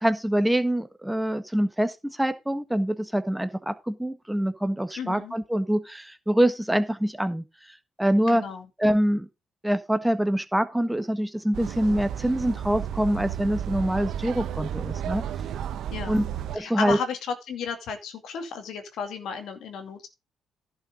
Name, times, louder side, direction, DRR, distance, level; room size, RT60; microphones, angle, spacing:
voice 1, 0.0-7.4 8.0-8.4 8.8-9.3 9.6-15.2 16.1-16.2 16.5-17.0, right 1 dB, 5° right, 1.4 m, -25 dB
voice 2, 5.0-5.3 8.3-8.7 15.9-16.3 16.6-20.1, left 6 dB, 75° left, 2.3 m, -33 dB
sound 1, 11.5-16.6, right 9 dB, 75° right, 0.9 m, -33 dB
11.5 x 6.3 x 5.1 m
cardioid pair, 90°, 0 cm